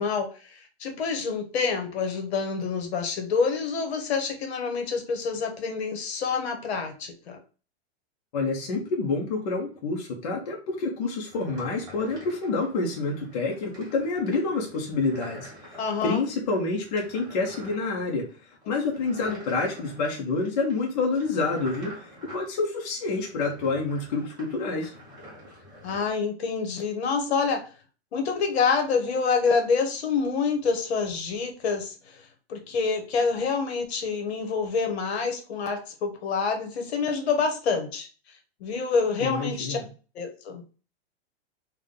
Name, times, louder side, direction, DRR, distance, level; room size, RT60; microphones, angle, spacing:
voice 1, 0.0-7.4 15.8-16.2 19.2-19.3 25.8-27.6 28.1-38.1 38.6-39.8 40.1-40.6, left 5 dB, 70° left, 4 dB, 1.1 m, -27 dB
voice 2, 8.3-15.5 16.0-18.3 18.7-22.0 22.3-24.9 39.2-39.8, left 3 dB, 40° left, -1 dB, 0.8 m, -28 dB
sound 1, 11.3-26.1, equal, 10° right, 0.6 m, -48 dB
3.5 x 2.2 x 3.6 m, 0.37 s
supercardioid pair, 170°, 33 cm